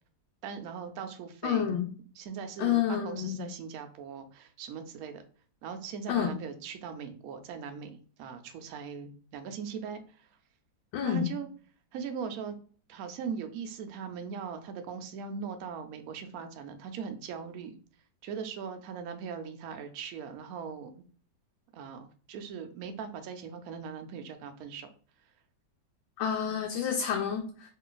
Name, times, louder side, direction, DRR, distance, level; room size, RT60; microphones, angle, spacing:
voice 1, 0.4-1.8 2.2-5.2 5.6-10.0 11.0-11.5 11.9-12.5 12.9-17.7 18.2-20.9 21.7-24.9, right 6 dB, 75° right, 7 dB, 0.8 m, -40 dB
voice 2, 1.4-1.9 2.6-3.5 6.1-6.3 10.9-11.3 26.2-27.7, left 8 dB, 80° left, 2 dB, 1.3 m, -29 dB
3.2 x 2.3 x 3.8 m, 0.42 s
omnidirectional pair, 2.1 m